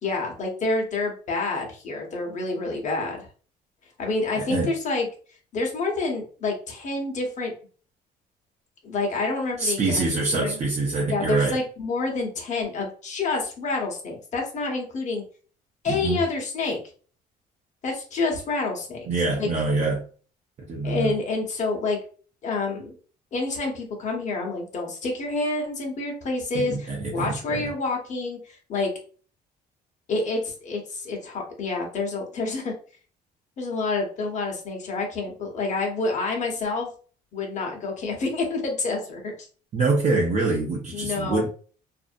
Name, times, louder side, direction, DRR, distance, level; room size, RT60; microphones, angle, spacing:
voice 1, 0.0-3.3 4.0-5.1 5.5-7.5 8.8-10.0 10.3-10.6 11.1-15.2 15.8-16.8 17.8-19.1 19.4-19.5 20.8-22.0 22.4-23.0 23.3-28.9 30.1-32.7 33.6-36.9 37.3-39.3 40.9-41.5, left 3 dB, 45° left, 1 dB, 1.0 m, -28 dB
voice 2, 4.4-4.7 9.6-11.6 15.9-16.2 19.1-20.0 20.6-21.1 26.5-27.7 39.7-41.5, right 3 dB, 40° right, -2 dB, 0.6 m, -25 dB
2.6 x 2.0 x 2.5 m, 0.40 s
cardioid pair, 110°, 17 cm